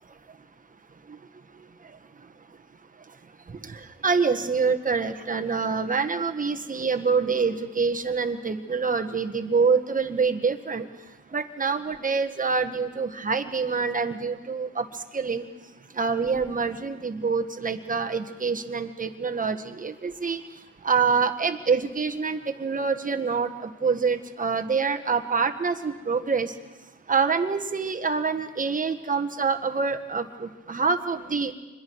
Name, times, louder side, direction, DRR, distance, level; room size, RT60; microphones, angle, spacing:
voice 1, 3.7-10.9 11.3-14.9 15.1-15.5 15.9-20.4 20.8-26.5 27.1-31.5, right 5 dB, 25° right, 7 dB, 1.5 m, -26 dB
26.5 x 21.5 x 4.8 m, 1.2 s
cardioid pair, 90°, 30 cm